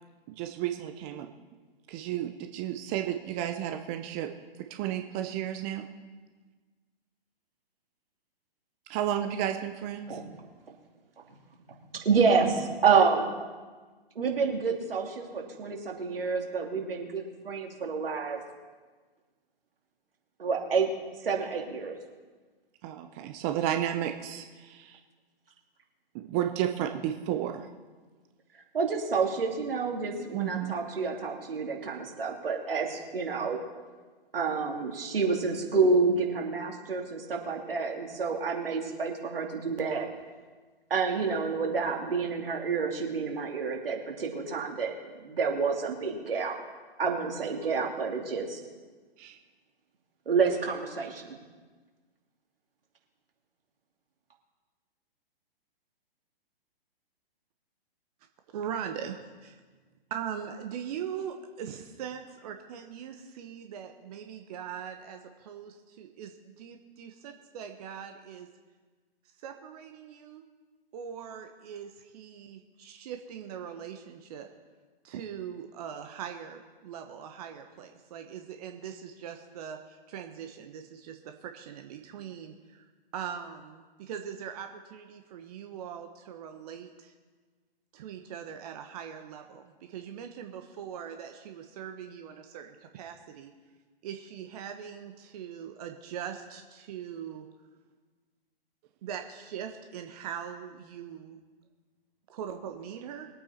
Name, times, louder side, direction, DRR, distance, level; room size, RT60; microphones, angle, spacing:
voice 1, 0.3-1.3 1.9-4.3 4.6-5.9 8.9-10.2 22.8-25.0 26.1-27.7 30.3-30.7 49.2-49.3, right 11 dB, 15° right, 6 dB, 0.4 m, -32 dB
voice 2, 12.0-13.3 14.1-18.4 20.4-20.9 21.2-22.0 28.7-33.6 34.3-40.1 40.9-46.6 47.0-48.6 50.3-51.4, right 5 dB, 65° right, 1 dB, 2.7 m, -28 dB
voice 3, 58.5-59.6 60.1-68.5 69.4-70.4 70.9-74.5 75.0-87.1 87.9-93.5 94.0-97.5 99.0-101.4 102.3-103.3, right 8 dB, 40° right, 5 dB, 1.0 m, -41 dB
22.0 x 8.5 x 4.3 m, 1.4 s
figure-of-eight pair, 125°, 30 cm